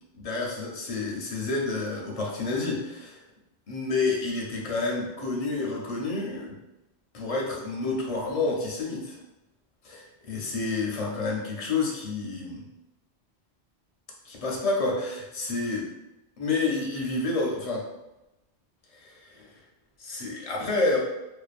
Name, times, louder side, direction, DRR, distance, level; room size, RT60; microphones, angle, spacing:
voice 1, 0.1-3.2 3.7-6.5 7.1-9.2 9.8-12.6 14.2-15.9 16.4-17.8 18.9-19.5 20.0-21.0, left 3 dB, 45° left, -2 dB, 0.5 m, -29 dB
2.7 x 2.2 x 2.4 m, 0.97 s
omnidirectional pair, 1.1 m